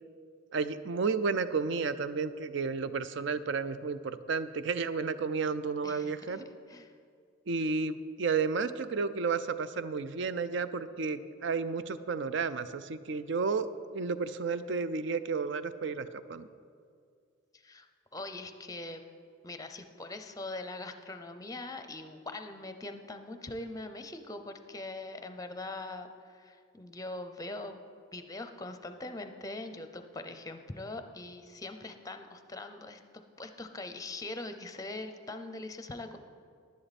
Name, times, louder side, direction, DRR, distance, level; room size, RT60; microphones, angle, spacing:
voice 1, 0.5-6.4 7.5-13.7 13.9-16.5, right 4 dB, 60° right, 13 dB, 0.4 m, -32 dB
voice 2, 5.8-6.9 17.5-17.9 18.1-19.0 19.4-27.8 28.1-33.0 33.4-36.2, left 2 dB, 15° left, 8 dB, 0.6 m, -42 dB
11.0 x 11.0 x 4.2 m, 2.2 s
head